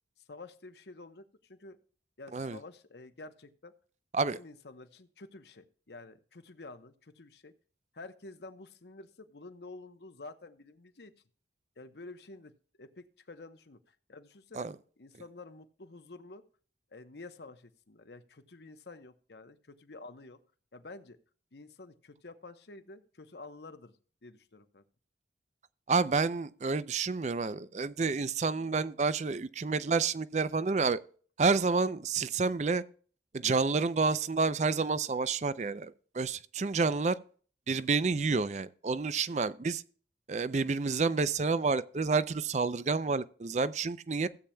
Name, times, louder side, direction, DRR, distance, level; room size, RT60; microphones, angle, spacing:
voice 1, 0.2-1.8 2.2-3.7 4.4-7.5 7.9-11.1 11.8-12.5 12.8-14.7 15.0-16.4 16.9-20.4 20.7-21.2 21.5-23.9 24.2-24.8, left 3 dB, 75° left, 0.9 m, -49 dB
voice 2, 25.9-31.0 31.4-32.8 33.3-37.2 37.7-39.8 40.3-44.3, right 4 dB, 40° right, 0.4 m, -29 dB
16.0 x 8.5 x 2.2 m
head